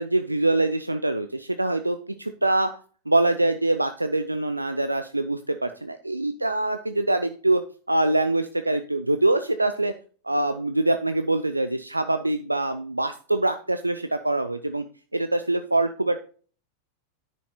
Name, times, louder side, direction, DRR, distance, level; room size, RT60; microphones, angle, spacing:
voice 1, 0.0-2.7 3.1-7.6 7.9-9.9 10.2-14.8 15.1-16.2, right 2 dB, 85° right, 9 dB, 0.4 m, -24 dB
9.8 x 5.2 x 4.1 m, 0.41 s
figure-of-eight pair, 90°, 0 cm